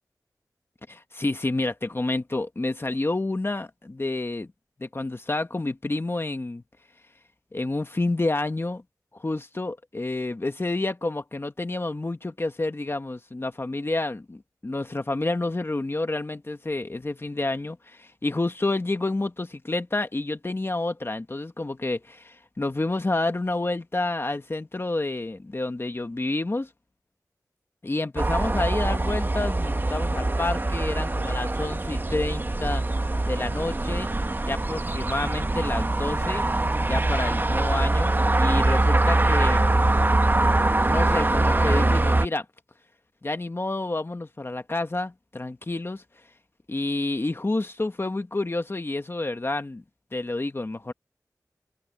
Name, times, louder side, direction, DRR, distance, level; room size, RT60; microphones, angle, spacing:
voice 1, 0.9-4.5 4.8-6.6 7.5-8.8 9.1-26.7 27.8-32.8 33.3-34.1 34.4-36.4 36.9-39.7 40.9-42.5 43.2-46.2 46.7-49.8 50.1-50.9, left 2 dB, 35° left, 1.4 m, -29 dB
sound 1, 28.2-42.3, right 2 dB, 30° right, 1.0 m, -23 dB
wide cardioid pair, 70°, 7 cm